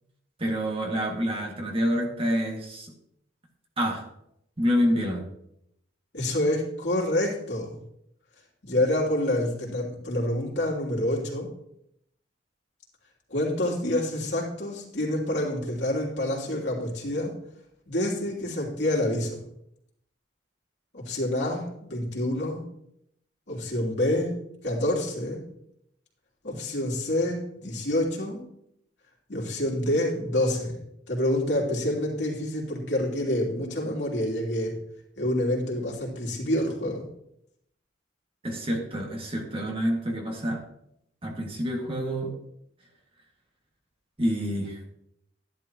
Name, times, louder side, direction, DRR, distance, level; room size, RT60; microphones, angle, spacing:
voice 1, 0.4-2.9 3.8-4.0 4.6-5.3 38.4-40.6 41.2-42.4 44.2-45.0, equal, 30° right, 1 dB, 1.9 m, -27 dB
voice 2, 6.1-7.8 8.6-11.5 13.3-17.3 17.9-19.4 20.9-22.6 23.5-24.3 24.6-25.4 26.4-28.4 29.3-30.8 31.1-34.7 35.2-37.1, left 1 dB, 65° left, -3 dB, 3.0 m, -27 dB
12.5 x 11.0 x 2.9 m, 0.77 s
head